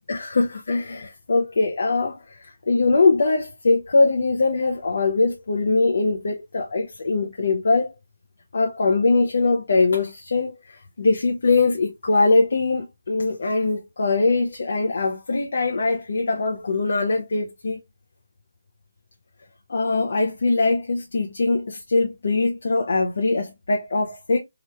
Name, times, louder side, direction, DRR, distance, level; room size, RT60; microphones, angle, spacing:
voice 1, 0.1-7.9 8.5-17.8 19.7-24.4, left 3 dB, 65° left, 0.6 m, -22 dB
3.1 x 2.9 x 2.3 m
figure-of-eight pair, 160°, 0 cm